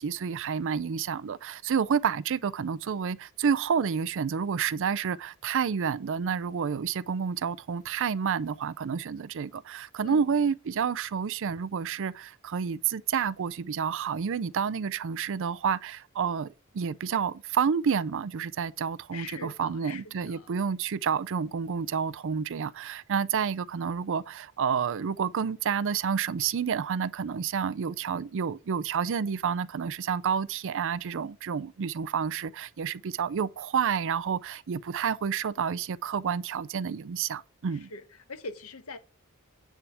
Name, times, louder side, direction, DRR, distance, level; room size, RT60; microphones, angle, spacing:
voice 1, 0.0-37.9, right 7 dB, 60° right, 0.4 m, -29 dB
voice 2, 19.1-20.5 37.7-38.0 38.3-39.0, left 3 dB, 70° left, 1.1 m, -42 dB
9.5 x 3.4 x 7.0 m
head